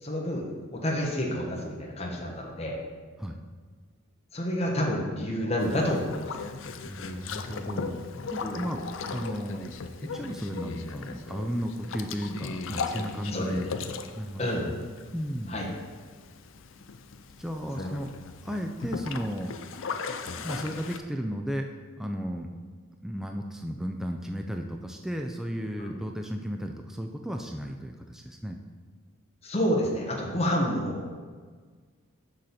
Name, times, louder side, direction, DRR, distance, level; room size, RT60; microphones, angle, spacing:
voice 1, 0.0-2.8 4.3-6.4 8.4-8.6 13.3-13.5 14.4-14.7 15.5-15.7 17.8-17.9 25.8-25.9 29.4-31.1, equal, 30° left, -2 dB, 1.2 m, -29 dB
Boat Water vehicle, 5.6-21.0, left 4 dB, 65° left, 0.5 m, -38 dB
voice 2, 6.8-8.8 9.1-13.7 14.1-14.8 15.1-15.6 17.4-18.2 18.4-20.0 20.2-21.7 22.0-22.5 23.0-28.6, equal, ahead, 3 dB, 0.3 m, -34 dB
6.5 x 6.3 x 4.2 m, 1.5 s
head